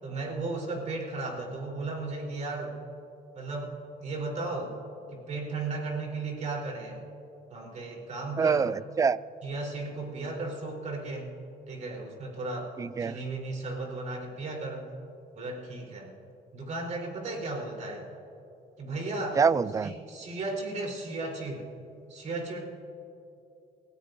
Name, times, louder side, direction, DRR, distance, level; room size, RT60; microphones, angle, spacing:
voice 1, 0.0-2.8 3.3-4.7 5.1-7.0 7.5-8.7 9.4-11.4 11.7-12.7 13.0-14.9 15.3-16.1 16.5-18.1 18.8-19.4 19.8-21.7 22.1-22.6, right 2 dB, 45° right, -1 dB, 3.9 m, -35 dB
voice 2, 8.4-9.2 12.8-13.2 19.4-19.9, right 5 dB, 20° right, 18 dB, 0.3 m, -25 dB
28.5 x 16.5 x 2.7 m, 2.7 s
cardioid pair, 110°, 17 cm